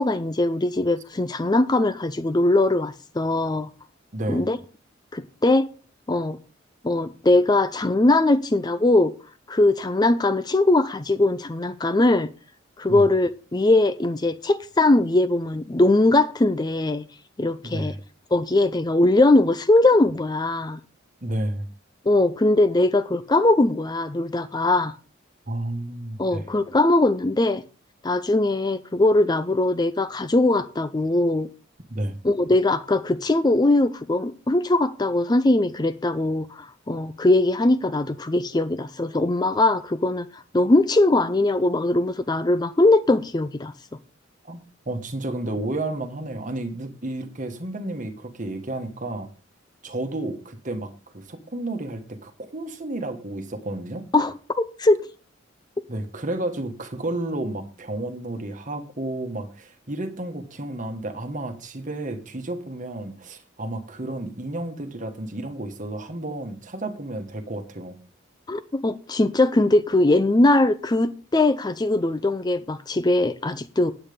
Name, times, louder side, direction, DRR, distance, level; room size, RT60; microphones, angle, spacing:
voice 1, 0.0-3.7 4.3-4.6 5.1-5.7 6.1-6.4 6.8-9.1 9.5-12.3 12.8-17.0 17.4-17.9 18.3-20.8 22.1-24.9 26.2-27.6 28.0-31.5 32.2-43.7 54.1-54.3 54.8-55.1 68.5-73.9, left 2 dB, 20° left, 0.4 m, -20 dB
voice 2, 4.1-4.5 12.9-13.0 17.6-18.0 21.2-21.7 25.5-26.5 31.9-32.2 44.4-44.6 44.8-49.3 49.8-54.1 55.9-68.0, right 1 dB, 40° right, 1.4 m, -31 dB
8.9 x 8.9 x 5.1 m
head